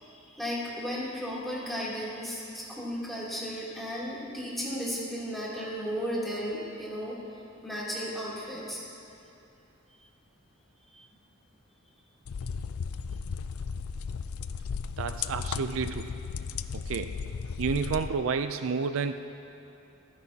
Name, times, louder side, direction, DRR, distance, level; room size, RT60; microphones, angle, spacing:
voice 1, 0.0-7.2 7.6-8.8 10.9-11.0, equal, ahead, -8 dB, 2.9 m, -35 dB
sound 1, 12.3-18.1, left 5 dB, 85° left, 0.4 m, -35 dB
voice 2, 15.0-16.1 16.7-17.2 17.6-19.1, right 5 dB, 65° right, 9 dB, 0.4 m, -30 dB
28.0 x 10.0 x 2.8 m, 2.7 s
head